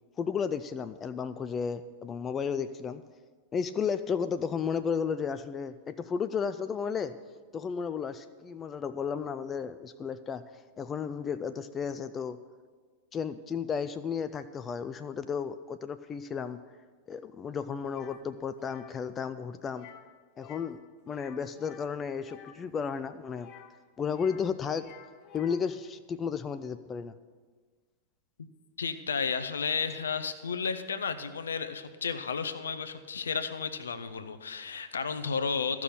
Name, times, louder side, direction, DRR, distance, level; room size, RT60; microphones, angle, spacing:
voice 1, 0.2-3.0 3.5-7.2 7.5-10.4 10.8-12.4 13.1-16.6 17.1-19.9 20.4-20.8 21.1-23.5 24.0-24.9 25.3-27.1, left 6 dB, 25° left, 11 dB, 0.4 m, -33 dB
sound 1, 17.9-18.2 18.6-18.9 19.7-20.1 20.4-20.8 21.0-22.6 23.3-24.5 24.7-25.7, left 10 dB, 40° left, 0.8 m, -51 dB
voice 2, 28.8-35.8, left 5 dB, 70° left, 10 dB, 0.6 m, -33 dB
14.0 x 6.0 x 7.0 m, 1.5 s
figure-of-eight pair, 90°, 0 cm